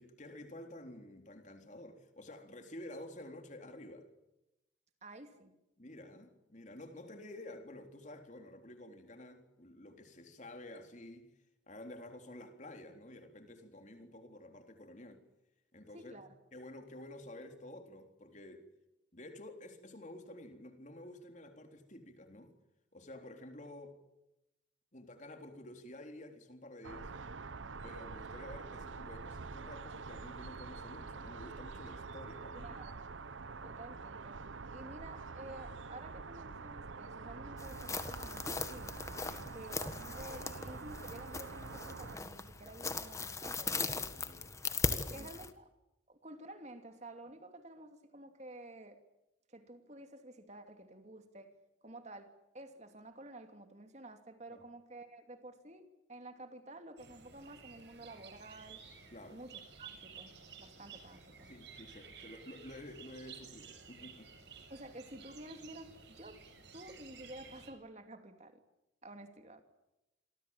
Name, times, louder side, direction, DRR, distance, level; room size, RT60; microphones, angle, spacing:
voice 1, 0.0-4.1 5.8-11.3 11.7-15.2 15.7-16.2 16.5-18.6 19.1-22.5 22.9-24.0 24.9-27.1 27.8-32.8 33.4-33.7 39.2-39.6 43.7-45.3 54.5-54.6 59.1-59.4 61.4-64.3, left 1 dB, 40° left, 3.8 m, -51 dB
voice 2, 5.0-5.5 15.9-16.3 32.6-33.0 33.6-34.4 34.7-39.0 39.5-44.1 45.1-45.6 46.1-49.0 49.5-51.5 51.8-58.8 59.3-60.3 60.6-61.5 64.7-66.4 66.7-68.6 69.0-69.6, right 1 dB, 35° right, 2.7 m, -51 dB
sound 1, 26.8-42.2, right 4 dB, 85° right, 0.9 m, -46 dB
sound 2, 37.6-45.5, left 3 dB, 15° left, 1.5 m, -39 dB
sound 3, 57.0-67.7, right 6 dB, 60° right, 6.7 m, -54 dB
27.0 x 24.0 x 7.4 m
head